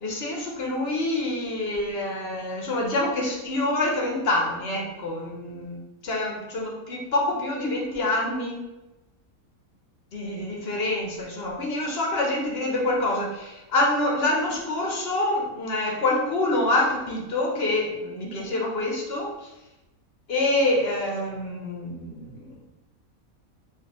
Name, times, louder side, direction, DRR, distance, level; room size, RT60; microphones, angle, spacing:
voice 1, 0.0-8.6 10.1-19.5 20.3-22.7, left 2 dB, 55° left, -1 dB, 0.8 m, -26 dB
4.1 x 2.6 x 2.9 m, 0.99 s
omnidirectional pair, 1.5 m